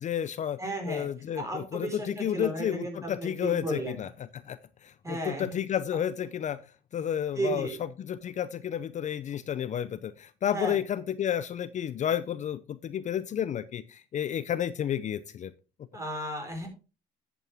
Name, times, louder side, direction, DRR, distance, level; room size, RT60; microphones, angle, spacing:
voice 1, 0.0-0.6 0.9-6.6 6.9-7.7 8.0-15.5, left 9 dB, 45° left, 14 dB, 0.6 m, -31 dB
voice 2, 0.6-1.1 1.3-4.0 5.0-5.5 7.0-7.1 7.3-7.7 10.5-10.8 15.9-16.7, right 2 dB, 20° right, 3 dB, 4.4 m, -34 dB
10.5 x 8.4 x 3.5 m, 0.32 s
cardioid pair, 110°, 17 cm